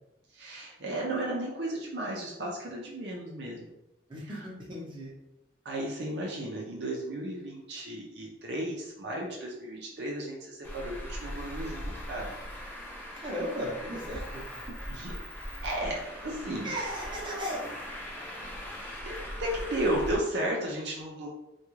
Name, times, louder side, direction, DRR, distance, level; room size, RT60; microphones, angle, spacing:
voice 1, 0.3-3.7 4.2-4.5 5.6-12.3 14.9-15.1 15.6-16.8 19.0-21.3, right 1 dB, 60° right, -2 dB, 0.6 m, -34 dB
voice 2, 4.1-5.1 13.2-14.4 16.6-17.7, equal, 25° right, -4 dB, 0.8 m, -36 dB
Traffic noise roadway noise, 10.6-20.2, equal, 10° left, 0.6 m, -40 dB
3.5 x 2.3 x 3.1 m, 0.89 s
head